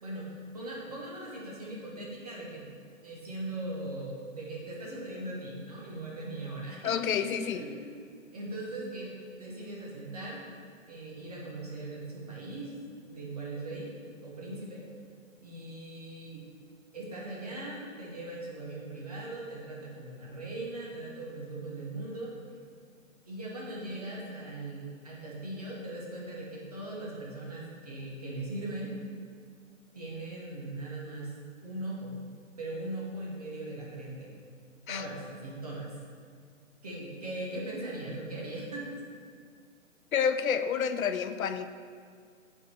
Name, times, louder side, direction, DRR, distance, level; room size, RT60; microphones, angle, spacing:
voice 1, 0.5-2.7 3.0-6.9 7.4-7.9 8.3-10.4 10.9-12.7 13.1-13.9 14.2-14.8 15.4-16.5 16.9-22.3 23.2-28.9 29.9-31.3 31.6-32.2 32.6-34.3 34.9-35.9 36.8-39.0, right 2 dB, 30° right, -4 dB, 1.0 m, -39 dB
voice 2, 6.8-7.6 34.9-35.1 40.1-41.7, left 7 dB, 90° left, 10 dB, 0.6 m, -29 dB
4.7 x 4.4 x 5.8 m, 2.1 s
hypercardioid pair, 175°, 40 cm